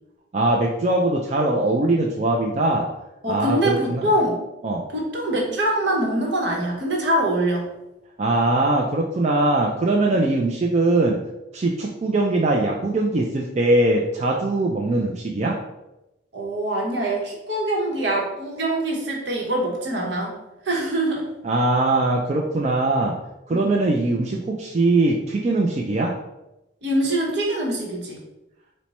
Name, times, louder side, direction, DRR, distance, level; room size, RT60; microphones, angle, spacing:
voice 1, 0.3-2.9 3.3-4.1 4.6-4.8 8.2-11.2 11.5-15.6 21.4-23.1 23.5-26.1, right 2 dB, 35° right, -1 dB, 0.3 m, -21 dB
voice 2, 3.2-4.4 4.9-7.7 16.3-20.4 20.6-21.3 23.5-23.8 26.8-28.2, right 1 dB, 65° right, -2 dB, 1.0 m, -24 dB
4.3 x 2.1 x 4.1 m, 0.94 s
head